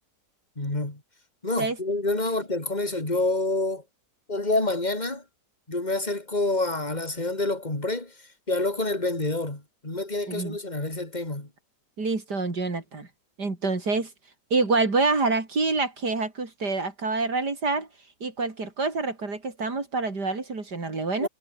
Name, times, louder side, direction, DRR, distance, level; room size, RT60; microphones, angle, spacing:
voice 1, 0.6-1.0 1.4-3.8 4.3-5.2 5.7-8.1 8.5-11.5 21.2-21.3, left 2 dB, 25° left, 4.4 m, -27 dB
voice 2, 12.0-13.1 13.4-14.1 14.5-17.9 18.2-21.3, right 3 dB, 70° right, 4.6 m, -27 dB
omnidirectional pair, 1.8 m